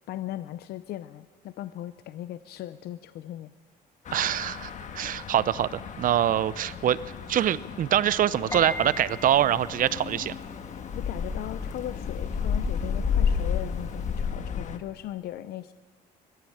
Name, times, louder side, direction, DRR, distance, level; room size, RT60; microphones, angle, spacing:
voice 1, 0.1-3.5 10.9-15.7, left 13 dB, 70° left, 12 dB, 0.7 m, -38 dB
sound 1, 4.0-14.8, left 6 dB, 45° left, 1.6 m, -32 dB
voice 2, 4.1-7.0 7.3-10.3, right 11 dB, 55° right, 18 dB, 0.7 m, -24 dB
Piano, 8.5-14.4, left 2 dB, 20° left, 5.9 m, -42 dB
21.5 x 15.5 x 8.7 m, 1.3 s
cardioid pair, 110°, 17 cm